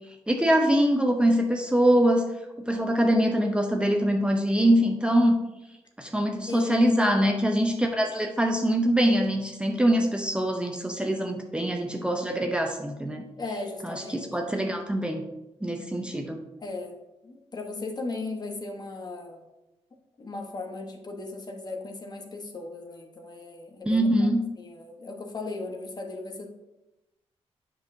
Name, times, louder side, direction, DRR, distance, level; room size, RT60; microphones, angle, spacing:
voice 1, 0.3-2.3 2.7-5.4 6.0-13.2 13.8-15.2 15.6-16.4 23.9-24.5, equal, 10° right, 3 dB, 0.7 m, -23 dB
voice 2, 6.5-7.0 13.4-14.5 16.6-19.4 20.2-24.3 24.6-26.5, left 3 dB, 40° left, 3 dB, 1.1 m, -36 dB
7.9 x 5.4 x 2.7 m, 0.97 s
cardioid pair, 85°, 11 cm